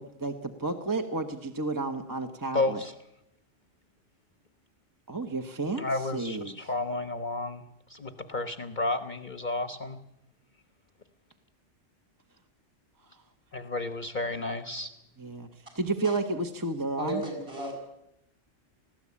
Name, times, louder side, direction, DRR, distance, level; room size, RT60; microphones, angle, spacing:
voice 1, 0.0-2.8 5.1-6.7 15.2-15.5 15.7-17.2, right 3 dB, 15° right, 5 dB, 1.0 m, -32 dB
voice 2, 2.5-2.9 5.8-7.6 7.9-10.0 13.5-14.9, left 2 dB, 40° left, 9 dB, 1.1 m, -31 dB
voice 3, 17.0-17.8, right 1 dB, 50° right, 2 dB, 7.1 m, -34 dB
19.5 x 15.5 x 8.5 m, 0.83 s
omnidirectional pair, 1.3 m